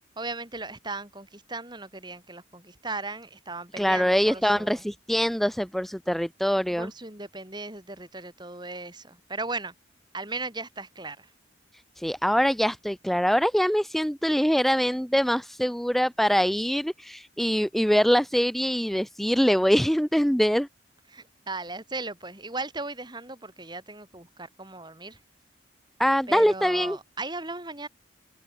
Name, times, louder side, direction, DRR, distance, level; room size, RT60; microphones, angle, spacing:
voice 1, 0.2-4.8 6.7-9.7 10.1-11.3 21.1-25.2 26.3-27.9, right 3 dB, 20° right, 3.4 m, -37 dB
voice 2, 3.8-6.9 12.0-20.7 26.0-27.0, equal, ahead, 0.4 m, -23 dB
head